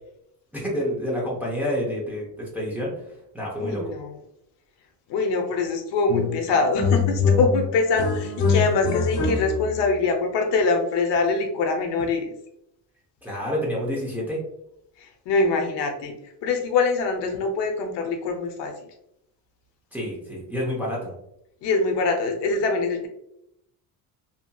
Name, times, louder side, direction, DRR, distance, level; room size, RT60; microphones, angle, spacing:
voice 1, 0.5-2.9 3.3-3.9 13.2-14.4 19.9-21.1, equal, 5° right, -5 dB, 0.7 m, -28 dB
voice 2, 3.6-4.1 5.1-12.3 15.0-16.1 16.4-18.7 21.6-23.1, left 3 dB, 70° left, 3 dB, 0.7 m, -24 dB
sound 1, 6.1-6.5 6.7-9.8, left 5 dB, 35° left, 0.5 m, -23 dB
2.8 x 2.7 x 2.2 m, 0.79 s
cardioid pair, 150°, 43 cm